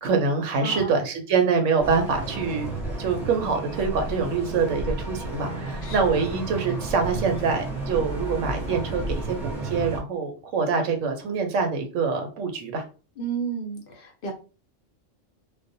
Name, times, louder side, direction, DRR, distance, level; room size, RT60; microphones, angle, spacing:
voice 1, 0.0-2.7 3.0-12.8, right 5 dB, 85° right, 4 dB, 1.0 m, -25 dB
sound 1, 1.8-10.0, right 2 dB, ahead, 0.6 m, -32 dB
voice 2, 5.8-6.3 13.2-14.3, right 5 dB, 55° left, 1 dB, 0.7 m, -32 dB
2.4 x 2.0 x 2.6 m, 0.34 s
omnidirectional pair, 1.3 m